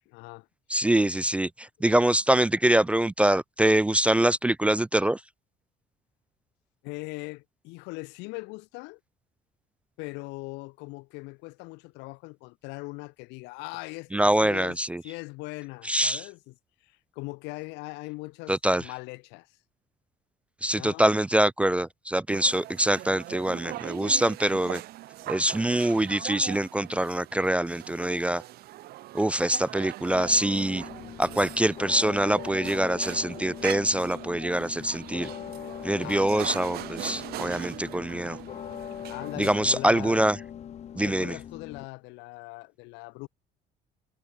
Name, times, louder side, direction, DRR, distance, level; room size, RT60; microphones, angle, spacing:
voice 1, 0.1-0.5 6.8-9.0 10.0-16.5 16.8-19.6 20.7-21.1 36.0-36.6 39.1-40.2 41.0-43.3, left 26 dB, 80° left, 0.8 m, -40 dB
voice 2, 0.7-5.2 14.1-15.0 15.8-16.2 18.5-18.8 20.6-24.8 25.3-28.4 29.1-30.8 31.2-35.3 35.8-38.4 39.4-40.4 41.0-41.4, right 1 dB, 5° right, 0.3 m, -24 dB
sound 1, 22.3-40.2, right 16 dB, 60° right, 2.8 m, -41 dB
sound 2, 30.1-41.9, left 9 dB, 40° left, 1.5 m, -41 dB
cardioid pair, 135°, 18 cm